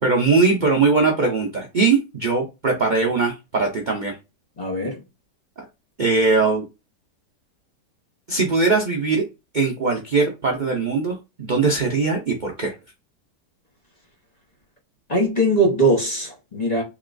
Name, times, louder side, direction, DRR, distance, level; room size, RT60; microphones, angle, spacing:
voice 1, 0.0-4.2 5.6-5.7 6.0-6.6 8.3-9.3 9.5-12.7, right 4 dB, 80° right, 0.4 m, -20 dB
voice 2, 4.6-5.0 15.1-16.8, right 1 dB, 30° left, 0.9 m, -20 dB
4.0 x 3.0 x 2.5 m
omnidirectional pair, 1.8 m